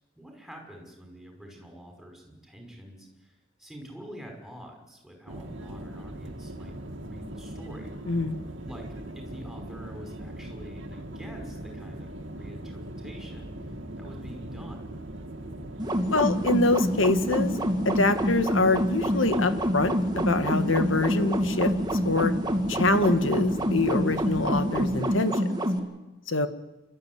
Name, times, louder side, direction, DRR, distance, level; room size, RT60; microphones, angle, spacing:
voice 1, 0.1-7.9 8.6-8.9 9.1-13.5 14.0-15.0, equal, ahead, 2 dB, 5.5 m, -46 dB
sound 1, 5.3-25.2, right 1 dB, 70° right, 2.2 m, -40 dB
voice 2, 8.1-8.4 16.1-17.6 17.9-21.7 22.1-22.3 22.7-25.4 26.3-26.5, left 2 dB, 80° left, 9 dB, 1.8 m, -25 dB
sound 2, 15.8-25.8, equal, 20° right, 2.5 m, -27 dB
28.0 x 13.5 x 9.6 m, 1.0 s
head